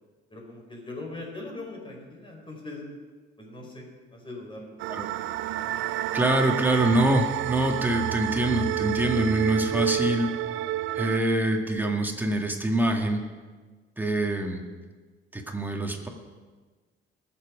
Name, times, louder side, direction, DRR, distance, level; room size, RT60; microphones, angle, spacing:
voice 1, 0.3-2.8 3.4-4.8, left 2 dB, 25° left, 0 dB, 4.7 m, -40 dB
sound 1, 4.8-11.2, right 13 dB, 85° right, 0.5 m, -29 dB
voice 2, 6.1-10.3 10.9-13.2 14.0-14.6 15.3-16.1, right 1 dB, 10° right, 2 dB, 1.9 m, -25 dB
20.0 x 7.5 x 5.1 m, 1.4 s
cardioid pair, 90°, 20 cm